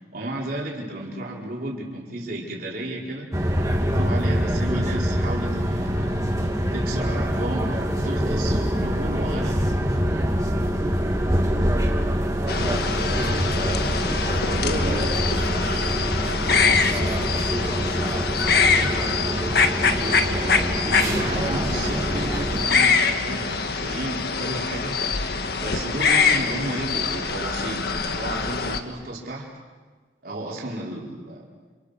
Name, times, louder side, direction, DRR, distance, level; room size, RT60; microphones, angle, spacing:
voice 1, 0.1-3.3 3.8-6.1 6.7-9.6 19.8-25.0 25.6-29.5 30.2-31.4, right 1 dB, 55° right, -3 dB, 4.9 m, -33 dB
sound 1, 3.3-22.7, equal, 20° right, 2.5 m, -25 dB
sound 2, 12.5-28.8, left 5 dB, 60° left, 1.6 m, -24 dB
voice 2, 12.6-14.1 14.5-17.4 17.9-18.9, right 1 dB, 80° right, -4 dB, 4.0 m, -36 dB
30.0 x 27.5 x 6.8 m, 1.4 s
head